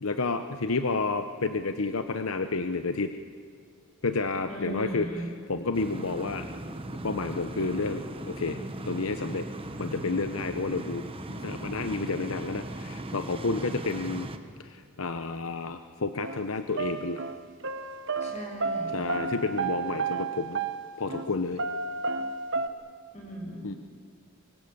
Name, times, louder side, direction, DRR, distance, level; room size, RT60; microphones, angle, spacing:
voice 1, 0.0-3.1 4.0-6.5 7.0-9.5 9.8-14.3 14.6-17.2 18.9-20.6 21.0-21.6 23.6-23.7, left 3 dB, 75° left, 8 dB, 0.9 m, -30 dB
voice 2, 4.5-5.3 18.2-19.1 23.1-23.7, right 1 dB, 30° left, 0 dB, 6.6 m, -38 dB
sound 1, 5.7-14.4, right 1 dB, 25° right, 1.2 m, -38 dB
sound 2, 16.2-16.4 16.7-21.3 21.6-22.7, right 4 dB, 60° right, 1.1 m, -32 dB
25.0 x 22.5 x 8.0 m, 2.1 s
head